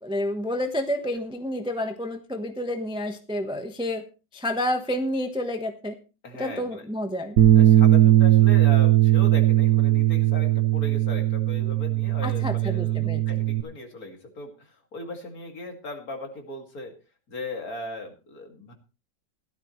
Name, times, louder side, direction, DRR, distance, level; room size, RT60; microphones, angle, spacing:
voice 1, 0.0-4.0 4.3-5.9 6.4-7.4 12.2-13.2, left 1 dB, 5° right, 6 dB, 0.9 m, -29 dB
voice 2, 6.2-6.8 7.6-16.9 17.3-18.7, left 2 dB, 55° left, 3 dB, 2.8 m, -38 dB
Bass guitar, 7.4-13.6, right 13 dB, 60° right, 1.3 m, -19 dB
16.0 x 12.0 x 3.2 m, 0.32 s
omnidirectional pair, 1.9 m